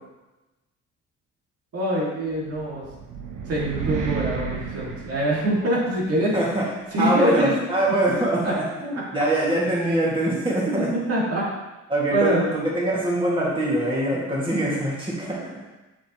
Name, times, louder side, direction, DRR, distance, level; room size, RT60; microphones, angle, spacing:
voice 1, 1.7-2.9 3.4-6.3 6.9-7.6 8.4-8.5 8.9-9.0 10.7-11.5 12.1-12.4, right 1 dB, 50° right, -5 dB, 2.4 m, -24 dB
sound 1, 2.5-5.9, right 5 dB, 80° right, 1.2 m, -32 dB
voice 2, 6.3-6.6 7.0-10.9 11.9-15.4, right 1 dB, 15° right, -6 dB, 2.2 m, -23 dB
7.2 x 7.0 x 3.1 m, 1.1 s
cardioid pair, 90°, 30 cm